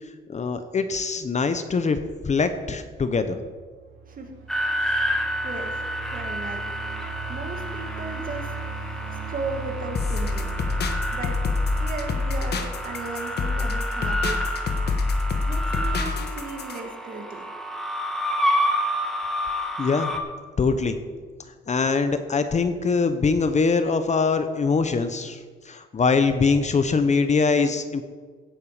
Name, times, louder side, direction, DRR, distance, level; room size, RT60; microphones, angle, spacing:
voice 1, 0.3-2.0 2.2-3.4 19.8-20.1 20.6-21.0 21.7-25.4 25.7-28.0, left 4 dB, 35° left, 9 dB, 1.0 m, -23 dB
sound 1, 3.6-13.8, right 4 dB, 80° right, 2.3 m, -38 dB
sound 2, 4.5-20.2, equal, ahead, 1.8 m, -30 dB
voice 2, 4.8-5.8 6.1-7.0 7.3-8.6 9.1-10.5 11.1-11.4 11.7-14.5 15.4-17.5, right 3 dB, 45° right, 3 dB, 2.3 m, -36 dB
sound 3, 9.9-16.8, left 3 dB, 55° left, 1.4 m, -26 dB
16.5 x 8.3 x 5.0 m, 1.5 s
cardioid pair, 90°, 20 cm